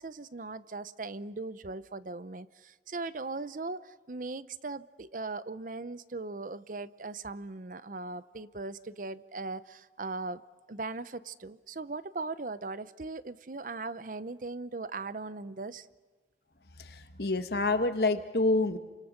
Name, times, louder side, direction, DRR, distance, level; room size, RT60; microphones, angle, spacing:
voice 1, 0.0-10.4 10.7-15.9, right 3 dB, 45° right, 16 dB, 0.7 m, -39 dB
voice 2, 16.8-18.8, left 2 dB, 60° left, 9 dB, 1.5 m, -27 dB
29.0 x 26.0 x 6.6 m, 1.4 s
head